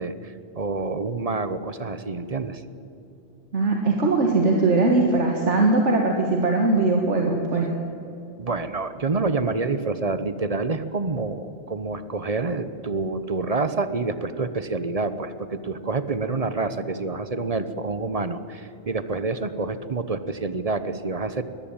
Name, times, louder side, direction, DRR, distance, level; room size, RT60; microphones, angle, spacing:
voice 1, 0.0-2.6 8.4-21.4, right 3 dB, 35° right, 12 dB, 0.9 m, -27 dB
voice 2, 3.5-7.7, right 3 dB, 85° right, 1 dB, 2.0 m, -20 dB
21.5 x 14.5 x 8.9 m, 2.8 s
omnidirectional pair, 1.2 m